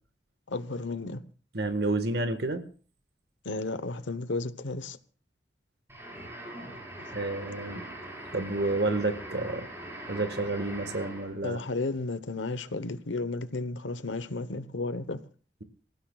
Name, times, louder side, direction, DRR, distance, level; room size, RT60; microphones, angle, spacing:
voice 1, 0.5-1.2 3.4-5.0 11.4-15.2, left 3 dB, 90° left, 1.0 m, -33 dB
voice 2, 1.5-2.6 7.1-7.8 8.3-9.7 10.1-11.6, right 2 dB, 60° right, 1.6 m, -30 dB
sound 1, 5.9-11.4, right 1 dB, 15° right, 5.3 m, -42 dB
26.0 x 16.0 x 2.4 m
head